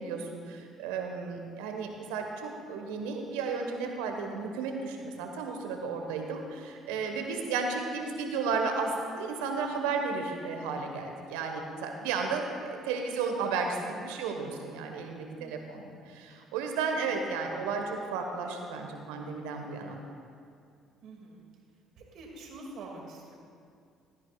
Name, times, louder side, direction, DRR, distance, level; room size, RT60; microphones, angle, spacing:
voice 1, 0.0-20.0, right 4 dB, 75° right, 3 dB, 1.3 m, -33 dB
voice 2, 6.6-7.3 14.4-14.6 15.3-15.7 16.0-16.1 21.0-21.5 22.0-23.3, right 2 dB, 60° right, 0 dB, 2.3 m, -48 dB
16.5 x 13.0 x 2.4 m, 2.3 s
hypercardioid pair, 55°, 0 cm